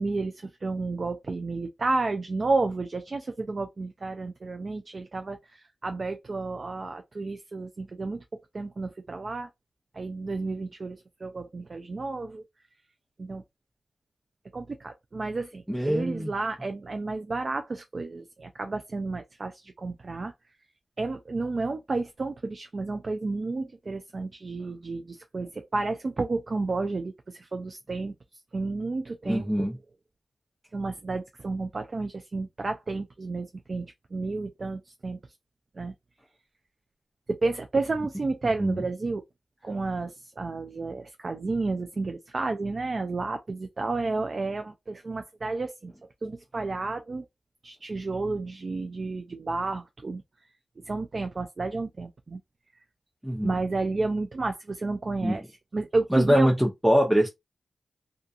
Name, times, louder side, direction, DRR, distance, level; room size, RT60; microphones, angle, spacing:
voice 1, 0.0-8.2 8.5-9.5 9.9-12.4 13.2-13.4 14.5-20.3 21.0-28.1 28.5-29.7 30.7-35.2 35.8-35.9 37.3-39.2 39.6-45.9 46.2-47.2 47.6-50.2 50.8-52.4 53.4-55.4 55.7-56.5, right 3 dB, 55° right, 0.3 m, -31 dB
voice 2, 15.7-16.3 29.3-29.8 38.6-38.8 53.2-53.6 55.2-55.4 56.1-57.3, equal, 5° right, 0.6 m, -23 dB
2.4 x 2.3 x 2.6 m
cardioid pair, 45°, 0 cm